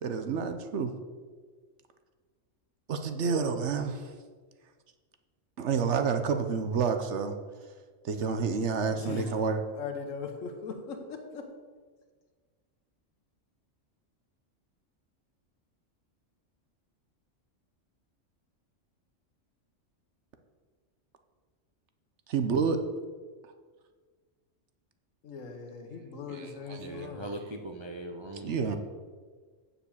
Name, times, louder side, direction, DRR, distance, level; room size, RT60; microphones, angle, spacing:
voice 1, 0.0-0.9 2.9-4.0 5.6-7.4 8.0-9.6 22.3-22.8 28.4-28.8, right 5 dB, 65° right, 7 dB, 1.1 m, -28 dB
voice 2, 8.9-9.4 9.7-11.4 25.2-27.2, left 5 dB, 80° left, 5 dB, 1.4 m, -40 dB
voice 3, 26.8-28.8, right 1 dB, 30° right, 3 dB, 0.5 m, -40 dB
7.2 x 6.9 x 7.1 m, 1.5 s
omnidirectional pair, 1.3 m